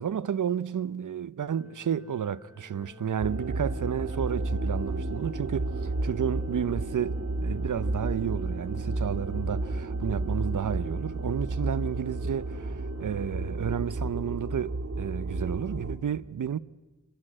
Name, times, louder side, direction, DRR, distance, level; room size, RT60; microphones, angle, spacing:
voice 1, 0.0-16.6, right 8 dB, 70° right, 0.7 m, -31 dB
sound 1, 1.5-13.2, equal, 5° right, 8.0 m, -51 dB
sound 2, 3.2-16.0, right 2 dB, 50° right, 2.3 m, -32 dB
28.5 x 16.5 x 8.7 m
cardioid pair, 50°, 31 cm